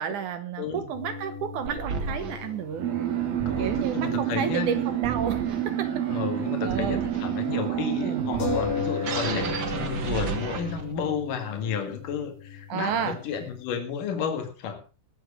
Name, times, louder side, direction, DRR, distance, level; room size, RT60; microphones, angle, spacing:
voice 1, 0.0-2.9 3.6-6.0 6.6-7.0 8.0-8.2 12.7-13.2, right 8 dB, 70° right, 11 dB, 2.3 m, -31 dB
voice 2, 0.6-0.9 3.5-4.8 6.1-14.8, left 7 dB, 70° left, 6 dB, 3.5 m, -32 dB
sound 1, 0.9-4.8 5.1-5.2 8.4-13.6, left 5 dB, 90° left, 5.4 m, -36 dB
sound 2, 1.7-11.1, right 6 dB, 45° right, 1.7 m, -35 dB
sound 3, 2.8-8.6, right 11 dB, 85° right, 3.7 m, -28 dB
20.0 x 8.0 x 4.9 m, 0.34 s
omnidirectional pair, 4.0 m